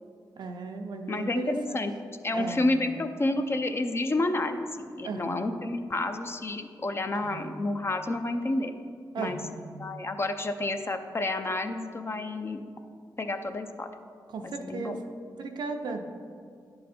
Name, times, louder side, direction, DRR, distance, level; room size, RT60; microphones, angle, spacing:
voice 1, 0.4-1.8 2.3-2.7 5.0-5.4 7.1-7.6 9.1-9.7 14.3-15.0 15.4-16.1, right 3 dB, 80° right, 4 dB, 0.6 m, -36 dB
voice 2, 1.1-1.9 2.2-8.8 9.2-9.4 9.8-12.6 13.2-13.9 14.4-15.0, left 2 dB, 35° left, 7 dB, 0.5 m, -30 dB
10.0 x 3.8 x 4.2 m, 2.2 s
cardioid pair, 70°, 8 cm